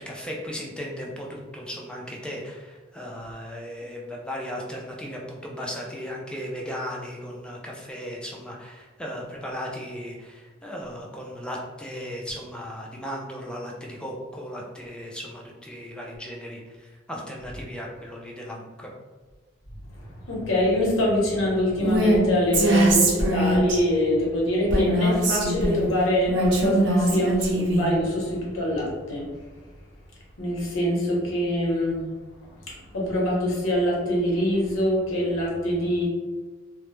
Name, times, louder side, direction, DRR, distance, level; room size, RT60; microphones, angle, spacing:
voice 1, 0.0-18.9, equal, 5° left, -2 dB, 0.3 m, -36 dB
voice 2, 19.9-29.3 30.4-32.0 32.7-36.1, left 1 dB, 80° left, -4 dB, 0.8 m, -24 dB
Female speech woman speaking, 21.8-22.2 22.5-23.8 24.7-25.8 26.3-27.9, right 1 dB, 60° right, 0.5 m, -21 dB
2.1 x 2.0 x 3.0 m, 1.3 s
head